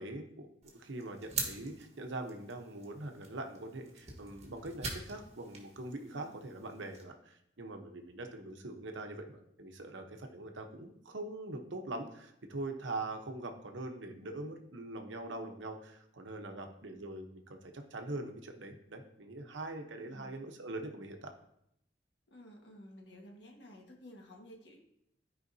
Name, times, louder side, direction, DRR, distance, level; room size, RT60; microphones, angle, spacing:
voice 1, 0.0-21.3, right 2 dB, 80° right, 4 dB, 1.0 m, -43 dB
sound 1, 0.6-7.0, right 4 dB, 35° right, 1.5 m, -44 dB
voice 2, 6.1-6.4 16.4-16.7 20.0-20.4 22.3-24.8, equal, 65° left, 0 dB, 1.5 m, -54 dB
13.5 x 4.9 x 2.7 m, 0.77 s
head